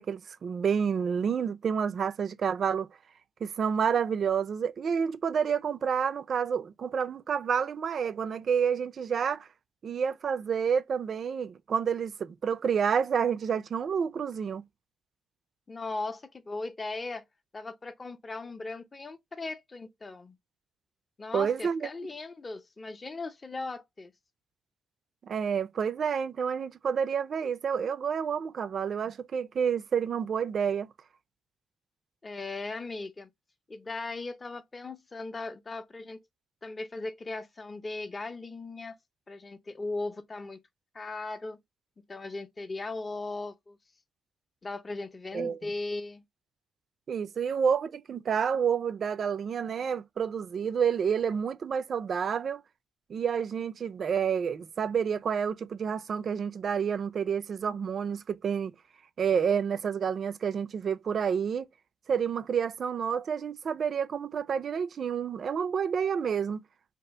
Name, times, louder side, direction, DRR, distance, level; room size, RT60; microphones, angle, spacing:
voice 1, 0.0-2.9 3.4-9.5 9.8-14.6 21.3-21.9 25.2-30.9 45.3-45.6 47.1-52.6 53.1-58.7 59.2-61.7 62.1-66.6, right 7 dB, 50° right, 0.3 m, -29 dB
voice 2, 15.7-17.2 17.5-20.4 21.2-24.1 32.2-33.3 33.7-36.2 36.6-39.0 39.3-40.6 40.9-41.6 42.1-43.8 44.6-46.2, left 3 dB, 30° left, 0.5 m, -38 dB
2.7 x 2.4 x 3.3 m
cardioid pair, 90°, 0 cm